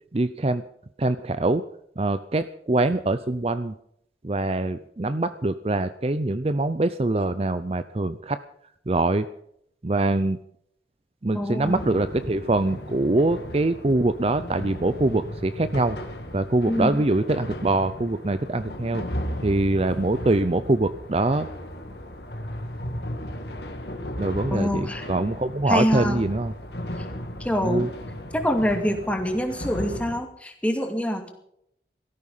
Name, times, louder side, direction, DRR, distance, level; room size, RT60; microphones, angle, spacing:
voice 1, 0.1-0.6 1.0-1.6 2.0-3.7 4.2-8.4 8.9-9.3 9.8-10.4 11.2-16.0 16.3-19.0 19.4-21.5 24.2-26.5 27.6-27.9, right 2 dB, 35° right, 12 dB, 0.6 m, -24 dB
voice 2, 11.3-11.8 16.7-17.0 24.5-25.1 25.7-26.2 27.4-27.9 28.3-31.3, equal, 5° left, 4 dB, 2.4 m, -25 dB
sound 1, 11.6-30.2, equal, 70° left, 2.2 m, -36 dB
17.5 x 14.0 x 5.5 m, 0.72 s
head